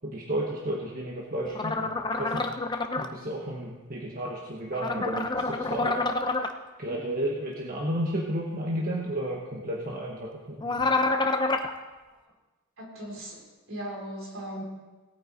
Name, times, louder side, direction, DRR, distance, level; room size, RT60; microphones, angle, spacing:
voice 1, 0.0-2.5 3.0-6.0 6.8-10.8, right 1 dB, 40° right, -2 dB, 1.2 m, -32 dB
sound 1, 1.5-3.1 4.7-6.5 10.6-11.7, left 3 dB, 20° left, 0.6 m, -27 dB
voice 2, 12.8-13.4 13.7-14.6, right 1 dB, 65° right, -2 dB, 3.9 m, -37 dB
18.0 x 9.0 x 4.2 m, 1.2 s
head